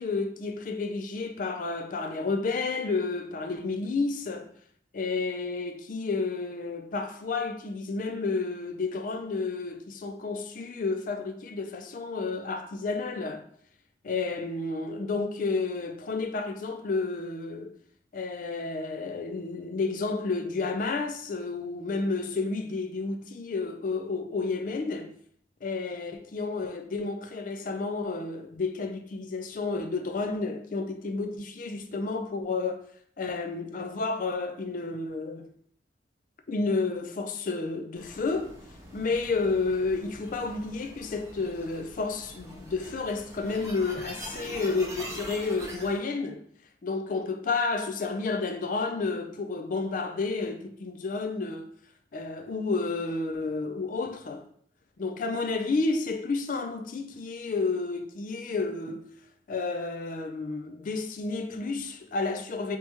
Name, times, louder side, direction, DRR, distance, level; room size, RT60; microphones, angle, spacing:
voice 1, 0.0-4.5 4.9-13.5 14.0-17.7 18.1-25.1 25.6-32.8 33.2-35.5 36.5-38.5 38.9-46.4 46.8-51.7 52.1-54.5 55.0-59.0 59.5-62.8, left 3 dB, 45° left, 0.4 m, -31 dB
sound 1, 38.0-46.0, right 1 dB, 15° right, 0.7 m, -44 dB
3.4 x 2.8 x 2.9 m
head